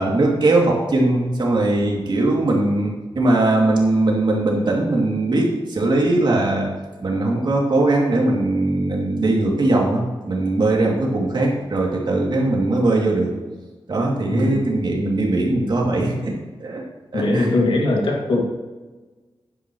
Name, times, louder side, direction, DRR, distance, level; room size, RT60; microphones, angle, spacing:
voice 1, 0.0-6.7 7.0-13.3 13.9-16.3 16.6-16.8 17.1-17.5, right 2 dB, 55° right, -2 dB, 2.7 m, -20 dB
voice 2, 14.3-14.6 17.1-18.4, left 2 dB, 80° left, -1 dB, 2.3 m, -20 dB
11.5 x 10.5 x 3.2 m, 1.3 s
wide cardioid pair, 115°, 9 cm